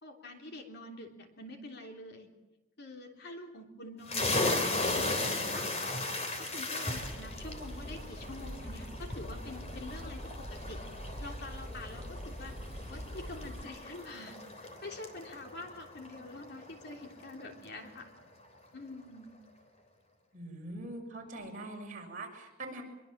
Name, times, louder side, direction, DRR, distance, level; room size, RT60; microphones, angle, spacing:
voice 1, 0.0-2.3 2.8-5.9 6.4-10.8 11.2-12.5 12.9-18.1 18.7-19.3, left 2 dB, 55° left, 3 dB, 3.4 m, -46 dB
sound 1, 4.1-17.4, left 2 dB, 30° left, 3.5 m, -37 dB
sound 2, 6.9-13.6, equal, 5° right, 4.0 m, -43 dB
voice 2, 20.3-22.8, right 2 dB, 40° right, 0 dB, 6.5 m, -43 dB
24.5 x 23.0 x 7.5 m, 1.0 s
head